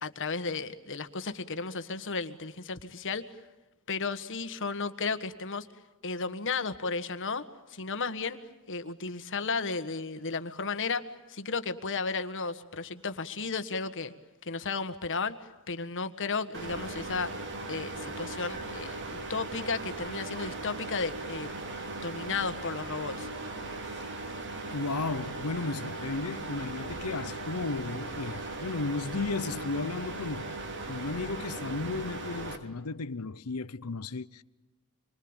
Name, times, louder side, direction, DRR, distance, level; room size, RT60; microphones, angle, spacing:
voice 1, 0.0-3.2 3.9-5.7 6.0-7.4 7.7-8.4 8.7-14.1 14.4-17.3 17.7-21.5 22.0-23.3, left 4 dB, 60° left, 1.6 m, -34 dB
sound 1, 16.5-32.6, right 2 dB, 55° right, 3.0 m, -38 dB
voice 2, 24.7-30.6 30.9-34.4, left 3 dB, 90° left, 0.9 m, -34 dB
27.0 x 24.0 x 9.0 m
head